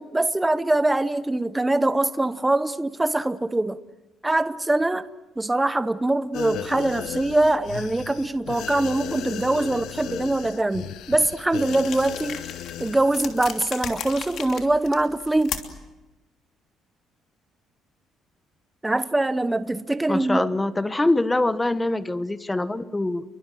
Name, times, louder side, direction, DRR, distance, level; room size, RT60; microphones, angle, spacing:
voice 1, 0.0-3.8 4.2-5.1 5.4-12.5 12.8-15.6 18.8-20.4, right 2 dB, 10° right, 0.9 m, -23 dB
sound 1, 6.3-13.7 14.0-14.2, left 11 dB, 80° left, 1.2 m, -36 dB
sound 2, 11.6-15.9, left 8 dB, 60° left, 3.0 m, -36 dB
voice 2, 20.1-23.2, left 2 dB, 10° left, 1.2 m, -24 dB
29.5 x 23.5 x 7.6 m
cardioid pair, 125°, 0 cm